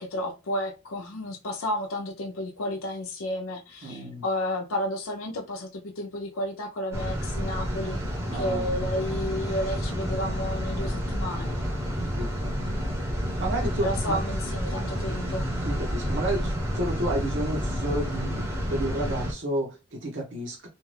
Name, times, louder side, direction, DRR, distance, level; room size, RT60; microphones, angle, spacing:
voice 1, 0.0-8.0 8.3-11.6 13.8-15.5, left 1 dB, 80° left, 0.6 m, -32 dB
voice 2, 3.8-4.2 8.3-8.6 11.9-12.5 13.4-14.2 15.6-20.7, right 1 dB, 60° right, 0.8 m, -31 dB
sound 1, 6.9-19.3, equal, 10° right, 0.8 m, -29 dB
2.6 x 2.3 x 3.2 m
head